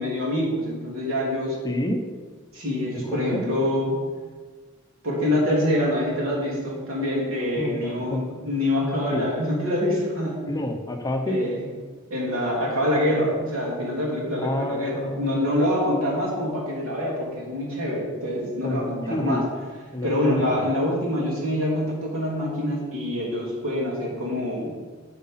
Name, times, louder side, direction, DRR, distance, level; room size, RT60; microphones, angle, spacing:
voice 1, 0.0-1.6 2.5-4.0 5.0-10.4 11.3-11.6 12.1-19.4 20.0-24.8, left 1 dB, 85° right, -4 dB, 3.3 m, -25 dB
voice 2, 1.6-2.0 3.1-3.4 7.6-8.2 9.1-9.2 10.5-11.4 14.4-15.6 18.6-19.4 19.9-20.7, left 1 dB, 20° left, 4 dB, 0.8 m, -29 dB
8.1 x 7.3 x 5.7 m, 1.4 s
head